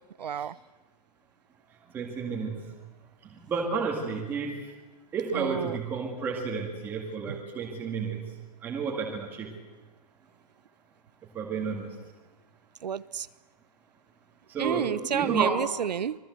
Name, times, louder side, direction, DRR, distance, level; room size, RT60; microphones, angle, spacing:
voice 1, 0.2-0.5 5.3-5.8 12.8-13.3 14.6-16.2, right 8 dB, 80° right, 17 dB, 1.0 m, -30 dB
voice 2, 1.9-2.6 3.4-4.6 5.1-8.2 8.6-9.5 11.3-11.9 14.5-15.7, right 5 dB, 10° right, 0 dB, 2.1 m, -31 dB
25.5 x 20.0 x 8.0 m, 1.2 s
hypercardioid pair, 175°, 21 cm